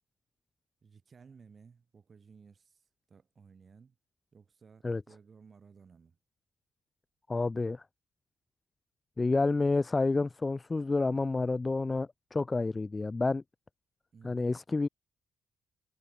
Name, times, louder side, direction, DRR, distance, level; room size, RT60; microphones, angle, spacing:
voice 1, 0.8-4.0 4.3-6.2 14.1-14.6, right 5 dB, 40° right, 5.7 m, -57 dB
voice 2, 7.3-7.8 9.2-13.4 14.2-14.9, left 3 dB, 25° left, 0.7 m, -29 dB
cardioid pair, 90°, 0 cm